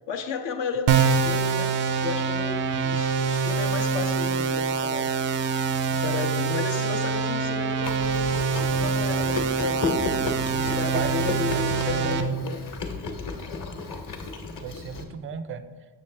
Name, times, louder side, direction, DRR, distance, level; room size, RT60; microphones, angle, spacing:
voice 1, 0.1-5.1 5.9-10.0 10.5-12.8, left 5 dB, 60° left, 5 dB, 0.7 m, -33 dB
sound 1, 0.9-12.2, right 5 dB, 85° right, 0.6 m, -25 dB
Chewing mastication, 7.8-15.0, left 3 dB, 40° left, 1.1 m, -34 dB
voice 2, 11.6-12.2 14.6-15.6, right 7 dB, 30° right, 11 dB, 0.3 m, -35 dB
7.0 x 6.7 x 3.2 m, 1.4 s
cardioid pair, 90°, 49 cm